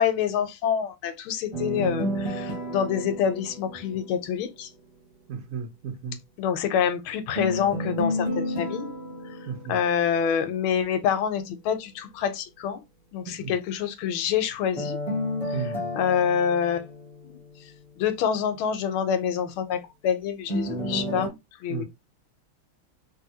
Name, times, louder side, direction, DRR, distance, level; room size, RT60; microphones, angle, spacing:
voice 1, 0.0-4.7 6.4-8.9 9.7-12.8 13.1-15.0 15.9-16.9 17.3-17.4 18.0-21.8, left 8 dB, 80° left, 1.4 m, -26 dB
sound 1, 1.5-4.6 7.3-10.6 14.8-17.8 20.5-21.3, equal, 25° left, 0.9 m, -32 dB
voice 2, 5.3-6.2 9.4-9.8 13.3-13.5 15.5-15.9 21.7-21.8, right 6 dB, 75° right, 0.7 m, -34 dB
3.2 x 2.7 x 2.8 m
omnidirectional pair, 2.4 m